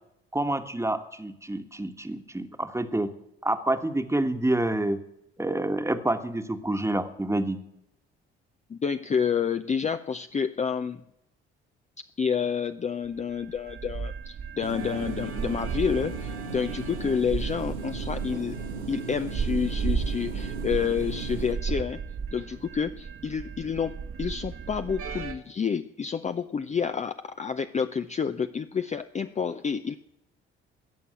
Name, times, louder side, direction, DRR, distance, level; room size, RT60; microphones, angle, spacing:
voice 1, 0.3-3.1 3.4-5.0 5.4-7.6, right 1 dB, 10° right, 8 dB, 1.4 m, -28 dB
voice 2, 8.7-11.0 12.2-18.6 18.9-22.0 22.3-23.9 24.2-30.0, left 6 dB, 20° left, 9 dB, 0.6 m, -29 dB
sound 1, 13.2-25.3, right 6 dB, 45° right, 1.5 m, -34 dB
sound 2, 14.6-21.5, right 4 dB, 90° right, 1.4 m, -37 dB
16.5 x 6.9 x 8.7 m, 0.84 s
figure-of-eight pair, 50°, 32 cm